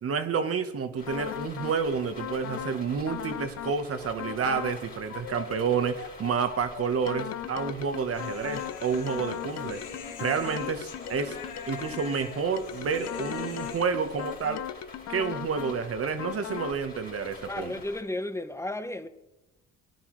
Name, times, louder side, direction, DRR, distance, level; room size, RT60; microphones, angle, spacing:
voice 1, 0.0-9.8 10.2-11.4 11.7-14.6 15.1-17.7, right 6 dB, 50° right, 1.2 m, -29 dB
sound 1, 1.0-18.0, left 3 dB, 30° left, 3.3 m, -47 dB
sound 2, 1.1-1.8 2.2-2.8 3.1-3.8 4.2-4.8 5.1-12.2 12.6-15.8 16.2-16.8, left 10 dB, 55° left, 0.6 m, -38 dB
Human voice, 8.1-14.5, left 7 dB, 80° left, 1.3 m, -43 dB
voice 2, 17.5-19.1, left 1 dB, 10° left, 0.8 m, -33 dB
17.0 x 11.0 x 3.2 m
cardioid pair, 90°, 30 cm